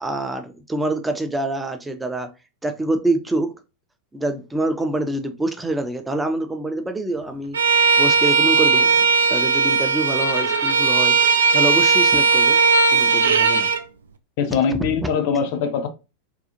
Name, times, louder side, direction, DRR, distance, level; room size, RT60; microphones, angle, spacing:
voice 1, 0.0-2.3 2.6-3.5 4.1-7.6 8.0-11.2 11.5-12.6 12.9-13.7, right 2 dB, 10° right, 0.5 m, -26 dB
Bowed string instrument, 7.5-13.8, right 4 dB, 65° right, 0.4 m, -17 dB
voice 2, 14.4-15.9, left 6 dB, 50° left, 0.6 m, -22 dB
3.7 x 2.4 x 2.8 m
figure-of-eight pair, 90°, 0 cm